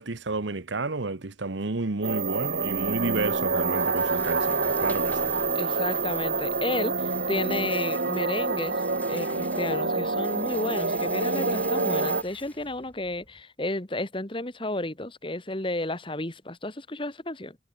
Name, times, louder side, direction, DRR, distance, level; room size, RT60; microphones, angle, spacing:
voice 1, 0.0-5.3, right 3 dB, 70° right, 1.1 m, -31 dB
sound 1, 2.0-12.2, right 3 dB, 55° right, 2.0 m, -27 dB
Rattle, 2.4-13.4, left 2 dB, 10° left, 6.4 m, -50 dB
voice 2, 5.6-8.8 9.1-17.6, left 2 dB, 25° left, 1.8 m, -32 dB
head